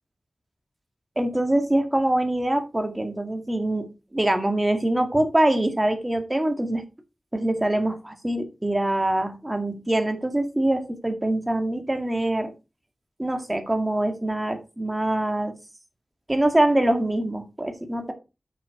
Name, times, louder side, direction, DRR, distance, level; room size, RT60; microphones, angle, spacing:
voice 1, 1.2-6.8 7.3-12.5 13.2-15.6 16.3-18.1, right 1 dB, 15° right, 1.9 m, -24 dB
8.6 x 6.7 x 4.7 m
wide cardioid pair, 95°, 0 cm